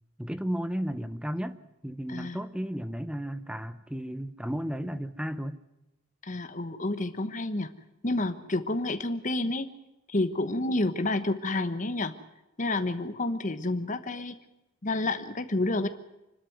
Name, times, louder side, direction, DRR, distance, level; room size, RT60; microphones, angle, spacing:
voice 1, 0.2-1.6 1.8-5.6, equal, 5° right, 13 dB, 0.7 m, -33 dB
voice 2, 6.2-7.7 8.0-9.7 10.1-12.1 12.6-14.4 14.8-15.9, left 2 dB, 40° left, 9 dB, 1.1 m, -29 dB
26.0 x 12.5 x 9.4 m, 0.94 s
head